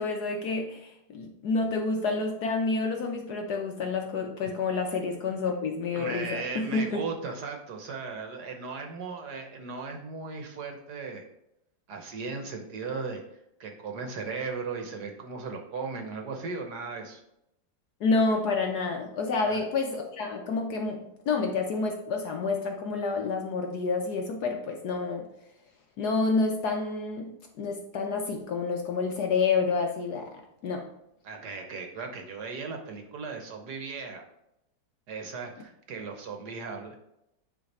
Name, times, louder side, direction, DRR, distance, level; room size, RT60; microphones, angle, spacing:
voice 1, 0.0-7.0 18.0-25.3 26.0-30.9, left 4 dB, 65° left, 3 dB, 1.1 m, -29 dB
voice 2, 5.9-11.2 11.9-13.2 13.6-17.2 19.4-19.6 31.2-34.2 35.1-37.0, right 4 dB, 60° right, 3 dB, 1.3 m, -37 dB
9.5 x 3.3 x 4.1 m, 0.82 s
omnidirectional pair, 2.2 m